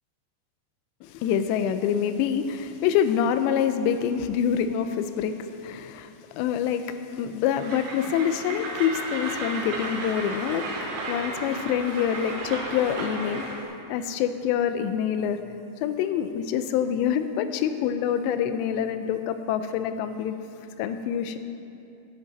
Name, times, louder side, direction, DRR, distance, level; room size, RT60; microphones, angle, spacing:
voice 1, 1.0-10.8 11.1-13.5 13.9-15.4 15.8-20.4 20.8-21.4, left 8 dB, 85° left, 9 dB, 2.8 m, -26 dB
Train, 7.6-13.6, right 2 dB, 65° right, 2.2 m, -34 dB
12.0 x 10.0 x 4.0 m, 2.7 s
omnidirectional pair, 5.0 m